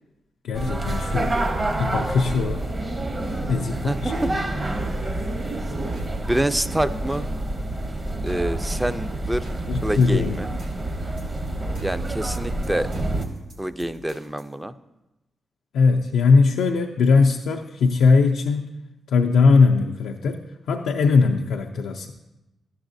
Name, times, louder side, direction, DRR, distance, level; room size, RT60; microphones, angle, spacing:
voice 1, 0.4-1.3 1.8-2.7 3.5-4.3 9.7-10.6 15.7-18.6 19.1-20.4 20.7-22.1, left 4 dB, 85° left, 1 dB, 0.4 m, -20 dB
sound 1, 0.5-13.3, right 1 dB, 35° right, 0.8 m, -28 dB
voice 2, 3.7-4.3 4.7-4.8 5.4-5.6 6.3-7.3 8.2-9.5 9.8-10.5 11.8-12.9 13.6-14.7, right 1 dB, 15° right, 12 dB, 0.4 m, -27 dB
sound 2, 5.9-6.4 6.8-7.3 7.7-7.9 8.3-8.8 9.1-9.7 10.0-10.3 10.6-14.5, equal, 90° right, 1.2 m, -47 dB
11.0 x 7.1 x 2.6 m, 0.99 s
supercardioid pair, 55°, 0 cm